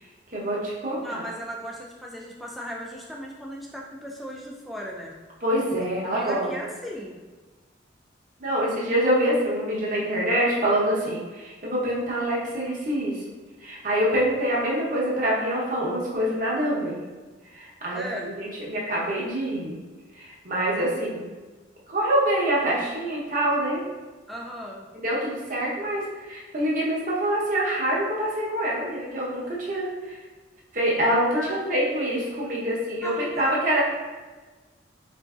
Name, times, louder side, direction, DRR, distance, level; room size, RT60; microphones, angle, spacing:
voice 1, 0.3-1.2 5.4-6.5 8.4-13.2 13.6-17.0 17.5-19.8 20.2-21.3 21.9-23.8 25.0-30.2 30.7-33.8, right 1 dB, 45° right, -5 dB, 0.8 m, -25 dB
voice 2, 1.0-5.1 5.8-7.2 17.9-18.3 24.3-24.9 31.3-31.8 33.0-33.5, equal, ahead, -2 dB, 0.3 m, -37 dB
3.9 x 2.6 x 2.3 m, 1.3 s
head